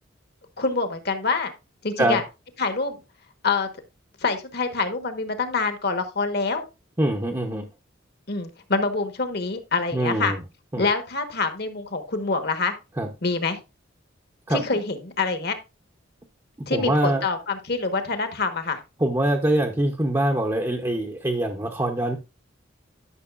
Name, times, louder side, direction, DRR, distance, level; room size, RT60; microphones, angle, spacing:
voice 1, 0.6-1.5 1.8-2.2 2.6-3.0 3.4-3.7 4.2-6.6 8.3-10.3 10.8-12.7 13.2-13.6 14.5-15.6 16.7-18.8, left 4 dB, 50° left, 8 dB, 1.3 m, -26 dB
voice 2, 7.0-7.6 9.9-10.4 10.7-10.8 13.0-13.1 14.5-14.8 16.7-17.2 19.0-22.2, right 1 dB, 15° right, 3 dB, 0.8 m, -23 dB
12.0 x 6.4 x 2.5 m, 0.27 s
head